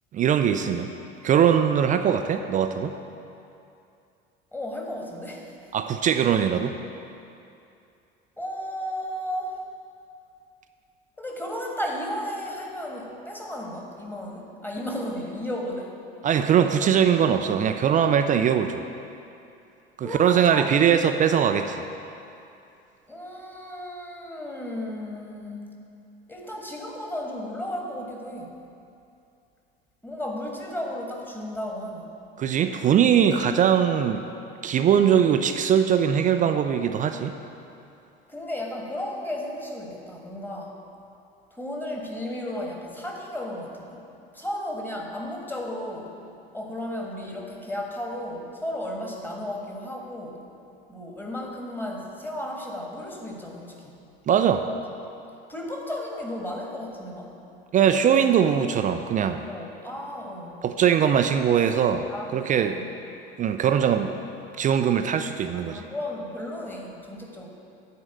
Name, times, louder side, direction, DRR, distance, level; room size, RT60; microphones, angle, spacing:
voice 1, 0.1-0.9 1.2-2.9 5.7-6.8 16.2-18.9 20.0-21.8 32.4-34.2 34.6-37.3 54.3-54.6 57.7-59.5 60.6-62.8 63.4-64.2 64.6-65.8, right 8 dB, 25° right, 8 dB, 0.4 m, -21 dB
voice 2, 4.5-5.6 8.4-9.6 11.2-15.9 20.0-20.7 23.1-25.7 26.3-28.6 30.0-32.2 38.3-40.8 41.5-44.0 44.3-46.2 46.5-50.4 50.9-54.0 55.5-57.4 59.5-60.7 62.1-62.3 62.7-62.8 65.5-67.5, left 1 dB, 5° left, 0 dB, 1.5 m, -34 dB
9.3 x 4.8 x 7.7 m, 2.6 s
figure-of-eight pair, 65°, 30 cm